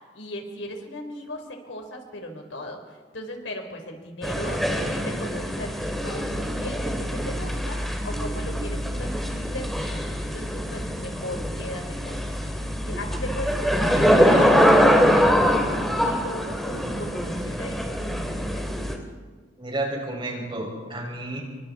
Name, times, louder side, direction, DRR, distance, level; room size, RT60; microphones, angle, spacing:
voice 1, 0.1-12.3 12.8-18.9, left 1 dB, 85° left, 3 dB, 4.3 m, -37 dB
sound 1, 4.2-19.0, equal, ahead, 2.5 m, -23 dB
voice 2, 19.6-21.4, right 2 dB, 25° right, -1 dB, 6.1 m, -31 dB
28.5 x 24.5 x 4.3 m, 1.4 s
head